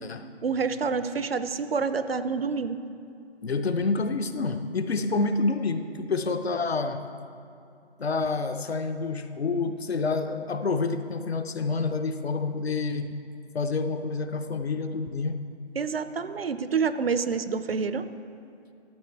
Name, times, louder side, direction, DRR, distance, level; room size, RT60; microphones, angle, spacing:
voice 1, 0.4-2.8 15.7-18.1, right 5 dB, 65° right, 12 dB, 0.6 m, -28 dB
voice 2, 3.4-7.0 8.0-13.1 13.5-15.4, left 3 dB, 70° left, 8 dB, 0.7 m, -28 dB
13.0 x 7.1 x 4.5 m, 2.5 s
figure-of-eight pair, 150°, 33 cm